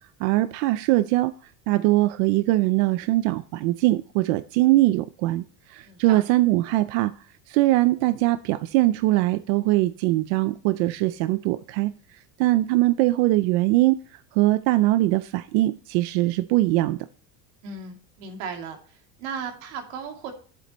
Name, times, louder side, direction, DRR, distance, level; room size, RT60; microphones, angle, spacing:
voice 1, 0.2-7.1 7.5-17.0, right 17 dB, 60° right, 0.5 m, -22 dB
voice 2, 5.8-6.2 17.6-18.8 19.2-20.3, right 6 dB, 80° right, 2.7 m, -35 dB
11.0 x 7.7 x 3.0 m
cardioid pair, 180°, 38 cm